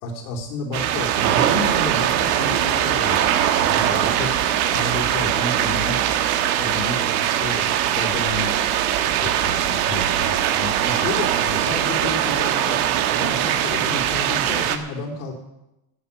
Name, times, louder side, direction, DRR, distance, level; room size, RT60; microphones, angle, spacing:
voice 1, 0.0-4.4 4.7-6.0 6.6-8.6 9.2-15.3, left 3 dB, 75° left, 1 dB, 3.5 m, -31 dB
sound 1, 0.7-14.8, right 11 dB, 70° right, 1.4 m, -21 dB
12.5 x 7.2 x 8.5 m, 0.91 s
supercardioid pair, 125°, 46 cm